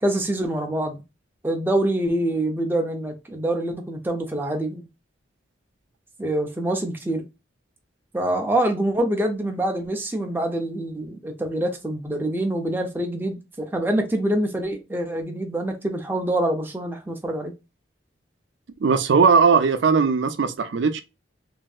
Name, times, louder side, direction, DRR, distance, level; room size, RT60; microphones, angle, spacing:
voice 1, 0.0-1.0 1.4-4.8 6.2-7.2 8.1-17.5, right 1 dB, 10° right, 0.4 m, -25 dB
voice 2, 18.8-21.0, right 5 dB, 70° right, 0.4 m, -18 dB
3.1 x 2.6 x 2.3 m
head